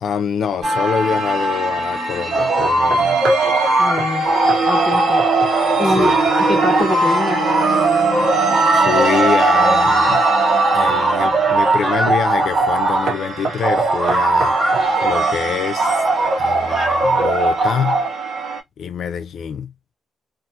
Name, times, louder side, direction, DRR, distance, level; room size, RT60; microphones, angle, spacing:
voice 1, 0.0-3.2 5.9-6.2 8.8-10.3 10.7-15.9 16.4-18.0 18.8-19.7, left 7 dB, 60° left, 0.3 m, -25 dB
sound 1, 0.6-18.6, right 2 dB, 85° right, 1.4 m, -22 dB
sound 2, 2.3-4.0 4.2-13.1 13.6-15.4 15.8-18.1, right 3 dB, 35° right, 0.9 m, -19 dB
sound 3, 2.6-3.5 4.0-4.2 4.5-4.7 4.9-5.6 5.9-6.3 9.6-10.3 10.9-11.3 12.1-12.3 12.6-12.8 13.1-14.9, right 4 dB, 65° right, 0.6 m, -28 dB
voice 2, 3.8-4.3 4.6-5.2 5.8-7.5, left 2 dB, 20° left, 0.7 m, -24 dB
2.4 x 2.4 x 2.7 m
cardioid pair, 135°, 0 cm